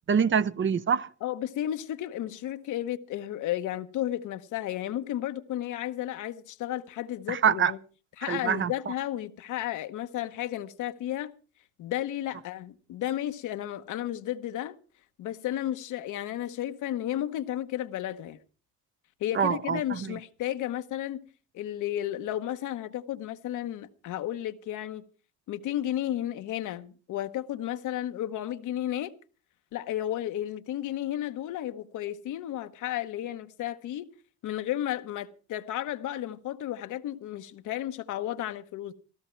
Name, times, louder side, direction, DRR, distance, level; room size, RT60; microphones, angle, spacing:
voice 1, 0.1-1.1 7.3-7.7 8.3-8.7 19.3-20.1, right 7 dB, 40° right, 0.6 m, -25 dB
voice 2, 1.2-7.8 8.2-11.3 11.8-14.8 15.2-18.4 19.2-21.2 21.5-25.0 25.5-29.1 29.7-34.1 34.4-38.9, left 12 dB, 85° left, 1.0 m, -33 dB
15.0 x 13.5 x 4.5 m
cardioid pair, 90°, 30 cm